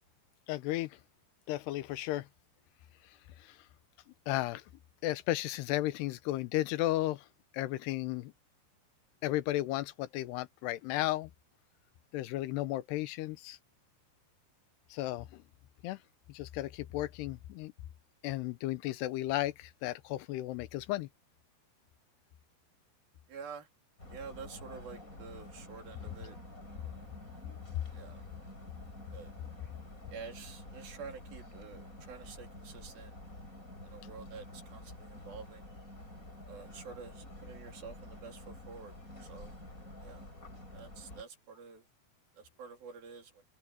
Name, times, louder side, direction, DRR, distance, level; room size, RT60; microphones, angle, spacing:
voice 1, 0.5-1.0 1.5-2.3 3.4-3.6 4.3-4.6 5.0-7.3 7.5-8.3 9.2-11.3 12.1-13.6 14.9-15.4 15.8-16.0 16.3-17.7 18.2-21.1, left 16 dB, 85° left, 3.0 m, -34 dB
voice 2, 23.3-23.7 24.1-26.4 26.7-27.0 27.9-28.2 29.1-29.3 30.1-33.2 33.8-35.7 36.5-38.9 39.2-39.6 40.0-40.2 40.7-41.8 42.3-43.4, right 5 dB, 65° right, 5.0 m, -48 dB
sound 1, 24.0-41.2, left 1 dB, 20° left, 7.5 m, -49 dB
omnidirectional pair, 4.7 m